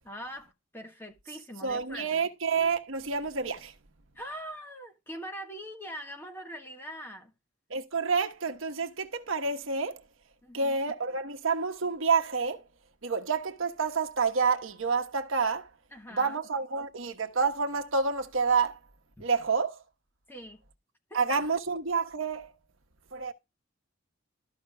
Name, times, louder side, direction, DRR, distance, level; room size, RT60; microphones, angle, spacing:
voice 1, 0.0-2.2 4.1-7.3 10.4-10.8 15.9-16.4 19.2-19.3 20.3-20.6 21.1-21.2, equal, 10° left, 1.4 m, -42 dB
voice 2, 1.6-3.7 7.7-10.0 10.5-12.6 13.0-15.7 16.1-18.8 19.2-19.8 21.1-22.5 23.1-23.3, right 5 dB, 75° right, 1.2 m, -28 dB
13.5 x 5.8 x 2.3 m
head